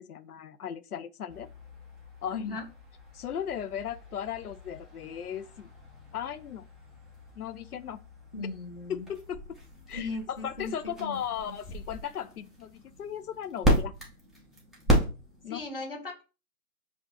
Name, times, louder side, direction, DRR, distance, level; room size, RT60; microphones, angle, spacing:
voice 1, 0.1-1.5 2.2-2.6 3.1-5.7 6.1-6.6 7.4-8.0 8.9-9.4 9.9-13.9 15.4-15.6, left 9 dB, 85° left, 0.6 m, -36 dB
sound 1, 1.3-15.7, equal, ahead, 0.5 m, -34 dB
voice 2, 2.3-2.7 8.3-9.1 9.9-11.2 11.5-11.6 15.5-16.2, left 3 dB, 40° left, 0.9 m, -38 dB
7.0 x 2.3 x 2.9 m
hypercardioid pair, 175°, 44 cm